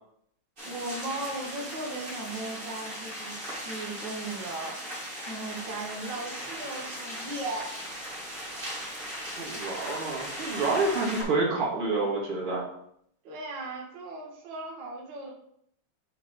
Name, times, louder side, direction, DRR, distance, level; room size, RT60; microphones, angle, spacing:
sound 1, 0.6-11.2, equal, 25° right, 2.0 m, -38 dB
voice 1, 0.6-4.8 5.3-7.8 13.2-15.3, right 2 dB, 60° right, -2 dB, 1.8 m, -37 dB
voice 2, 9.4-12.6, right 3 dB, 85° right, -4 dB, 2.7 m, -28 dB
6.1 x 3.9 x 4.6 m, 0.70 s
omnidirectional pair, 2.4 m